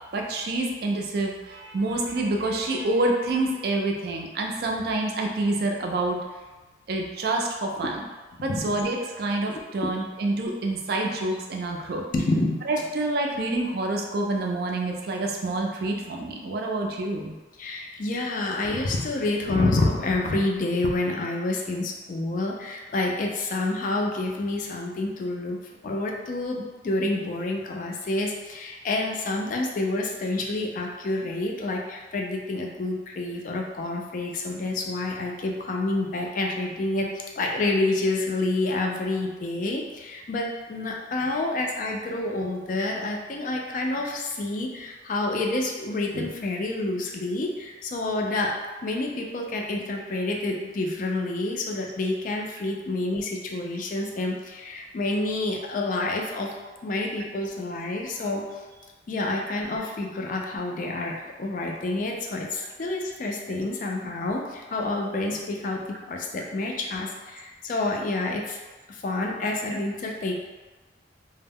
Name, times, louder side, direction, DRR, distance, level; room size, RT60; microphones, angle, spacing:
voice 1, 0.1-6.2 6.9-8.0 8.4-12.0 12.7-17.4, right 2 dB, 55° right, 1 dB, 0.4 m, -27 dB
voice 2, 12.1-12.6 17.6-25.6 25.8-48.5 48.8-56.5 56.8-58.4 59.1-68.6 68.9-70.3, left 2 dB, 45° left, 0 dB, 0.3 m, -28 dB
2.1 x 2.0 x 3.4 m, 1.2 s
head